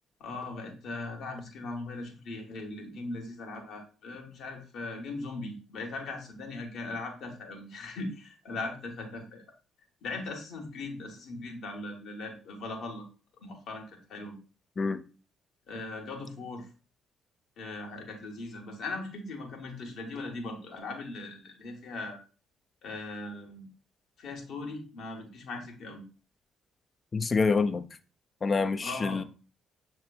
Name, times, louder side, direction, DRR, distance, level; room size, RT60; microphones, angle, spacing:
voice 1, 0.2-9.4 10.0-13.0 13.4-14.4 15.7-16.7 17.6-22.2 22.8-23.7 24.2-26.0 28.8-29.2, left 3 dB, 65° left, 1.1 m, -39 dB
voice 2, 27.1-27.8 28.4-29.2, left 4 dB, 40° left, 0.4 m, -26 dB
6.5 x 2.9 x 2.2 m
hypercardioid pair, 45°, 0 cm